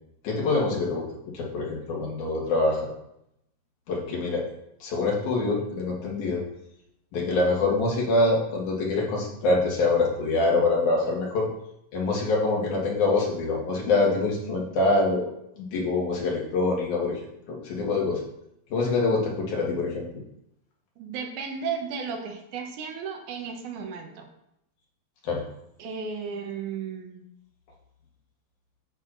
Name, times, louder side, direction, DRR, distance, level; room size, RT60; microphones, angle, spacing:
voice 1, 0.2-1.0 1.3-2.9 3.9-4.4 4.8-6.4 7.1-11.5 11.9-15.2 15.6-17.2 17.5-18.2 18.7-20.0 25.2-25.4, left 3 dB, 85° left, -2 dB, 3.2 m, -25 dB
voice 2, 21.0-24.3 25.8-27.3, right 6 dB, 85° right, 3 dB, 2.5 m, -34 dB
9.4 x 7.7 x 2.6 m, 0.80 s
omnidirectional pair, 3.4 m